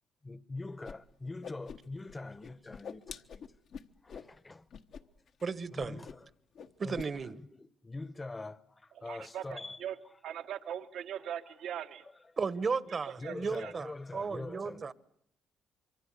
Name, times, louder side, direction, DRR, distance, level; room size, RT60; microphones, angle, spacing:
voice 1, 0.2-3.2 4.0-4.7 5.7-6.3 6.8-7.0 7.5-8.6 9.0-9.8 13.2-14.9, left 2 dB, 20° left, 1.0 m, -43 dB
Whoosh swoosh swish, 0.8-0.9 1.2-2.1 2.4-4.3 4.7-5.0 5.3-5.4 5.8-6.3 6.5-7.1, left 7 dB, 65° left, 1.2 m, -46 dB
voice 2, 5.4-6.1 6.8-7.4 12.4-14.9, right 5 dB, 40° right, 1.1 m, -35 dB
voice 3, 8.9-10.0 10.2-12.1 13.0-13.7, right 10 dB, 80° right, 1.4 m, -41 dB
26.0 x 24.0 x 8.3 m
cardioid pair, 90°, 0 cm